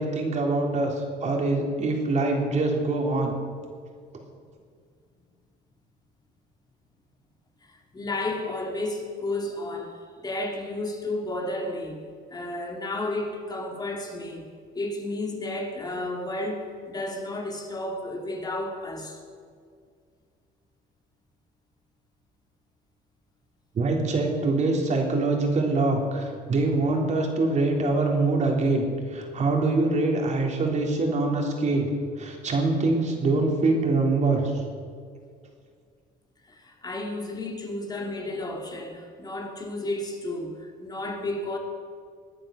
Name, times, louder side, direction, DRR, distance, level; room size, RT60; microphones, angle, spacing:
voice 1, 0.0-3.3 23.8-31.9 32.2-34.6, right 3 dB, 45° right, 1 dB, 3.5 m, -24 dB
voice 2, 7.6-12.0 12.3-14.5 14.7-19.2 36.5-41.6, left 2 dB, 25° left, 2 dB, 2.8 m, -32 dB
20.5 x 9.1 x 6.5 m, 2.1 s
cardioid pair, 110°, 17 cm